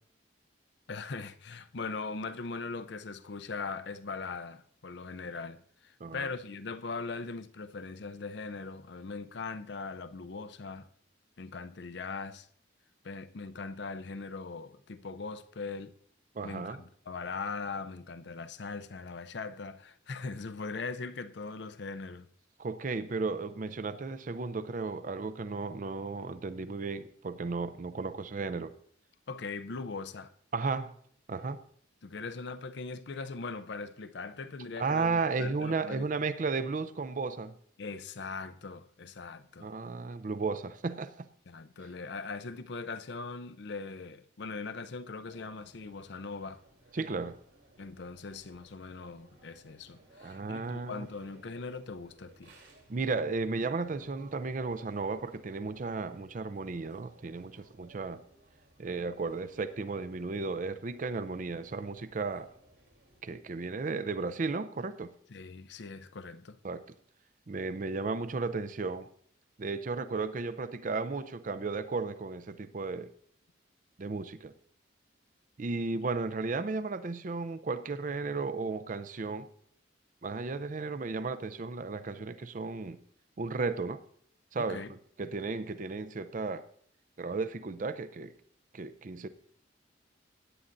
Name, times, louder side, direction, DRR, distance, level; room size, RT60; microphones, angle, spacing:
voice 1, 0.9-10.9 11.4-12.5 13.0-15.9 16.4-22.3 29.3-30.3 32.0-36.0 37.8-39.7 41.5-46.6 47.8-52.5 65.3-66.6 84.6-84.9, left 4 dB, 60° left, 0.5 m, -40 dB
voice 2, 16.3-16.8 22.6-28.7 30.5-30.9 31.3-31.6 34.8-37.5 39.6-41.3 46.9-47.4 50.2-51.1 52.9-58.2 58.8-62.5 63.2-65.1 66.6-66.8 67.5-69.1 69.6-73.1 74.0-74.5 75.6-79.5 80.2-83.0 83.4-84.0 84.5-86.6 87.2-88.3 88.7-89.3, right 4 dB, 40° right, 0.5 m, -34 dB
sound 1, 45.3-63.2, right 2 dB, 70° right, 3.2 m, -61 dB
17.0 x 9.9 x 2.6 m
head